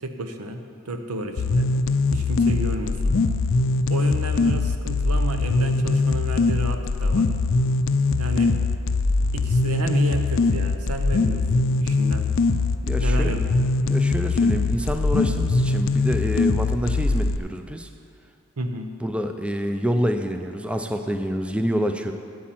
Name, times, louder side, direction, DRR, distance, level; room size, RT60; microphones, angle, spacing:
voice 1, 0.0-0.6 0.8-1.7 2.1-3.2 3.9-7.3 8.2-8.5 9.3-12.3 13.0-13.4 18.6-18.9, right 2 dB, 85° right, 6 dB, 0.9 m, -31 dB
sound 1, 1.4-17.4, left 3 dB, 60° left, 0.5 m, -22 dB
voice 2, 12.8-13.3 13.8-17.9 19.0-22.1, equal, 5° right, 6 dB, 0.4 m, -27 dB
8.5 x 8.4 x 7.5 m, 2.4 s
head